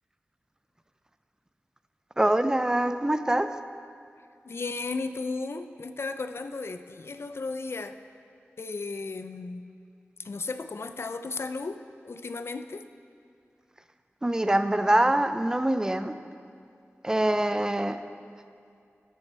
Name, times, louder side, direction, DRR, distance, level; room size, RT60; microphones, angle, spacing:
voice 1, 2.2-3.5 14.2-16.1 17.0-18.0, right 1 dB, 15° right, 10 dB, 0.4 m, -24 dB
voice 2, 4.5-8.0 8.6-9.7 10.2-11.8 12.0-12.8, left 3 dB, 65° left, 10 dB, 0.4 m, -34 dB
13.0 x 6.6 x 4.3 m, 2.4 s
wide cardioid pair, 80°, 5 cm